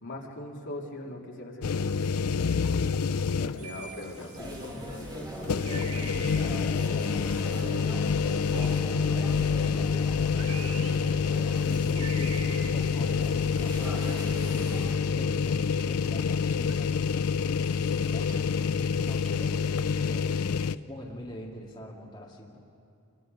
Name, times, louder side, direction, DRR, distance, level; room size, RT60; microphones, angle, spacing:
voice 1, 0.0-5.3 5.6-7.4 7.8-8.0, left 1 dB, 55° left, -1 dB, 2.8 m, -42 dB
sound 1, 1.6-3.8 4.2-4.3 5.4-20.8, left 6 dB, 80° left, 0.5 m, -27 dB
sound 2, 3.6-19.6, right 4 dB, 85° right, 4.8 m, -48 dB
sound 3, 4.3-14.9, equal, 20° right, 3.7 m, -39 dB
voice 2, 9.8-10.1 10.5-14.1 14.5-17.6 18.0-19.6 20.0-22.6, equal, 20° left, -4 dB, 2.2 m, -44 dB
28.5 x 23.5 x 5.3 m, 2.5 s
head